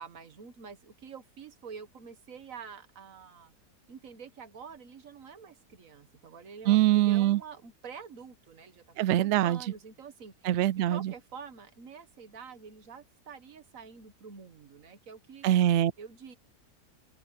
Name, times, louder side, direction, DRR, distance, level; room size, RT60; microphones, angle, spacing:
voice 1, 0.0-3.5 3.9-6.8 7.1-10.5 10.9-15.5 16.0-16.4, right 6 dB, 55° right, 1.7 m, -47 dB
voice 2, 6.7-7.4 9.0-9.6 10.4-11.1 15.4-15.9, right 13 dB, 80° right, 0.6 m, -23 dB
open air
omnidirectional pair, 1.8 m